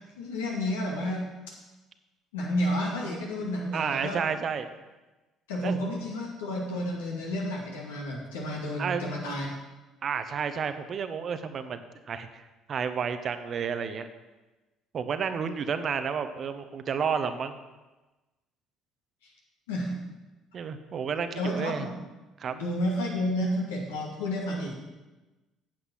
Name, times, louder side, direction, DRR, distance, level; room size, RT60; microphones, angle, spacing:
voice 1, 0.0-1.3 2.3-4.3 5.5-9.5 19.2-19.3 19.7-20.0 21.4-22.0 22.5-24.7, left 1 dB, 80° left, -2 dB, 2.3 m, -31 dB
voice 2, 3.7-4.7 5.6-5.7 8.8-9.0 10.0-11.8 12.1-14.1 14.9-17.6 20.5-21.9 22.4-22.6, right 6 dB, 50° right, 10 dB, 0.9 m, -31 dB
9.0 x 7.9 x 5.7 m, 1.1 s
hypercardioid pair, 55°, 0 cm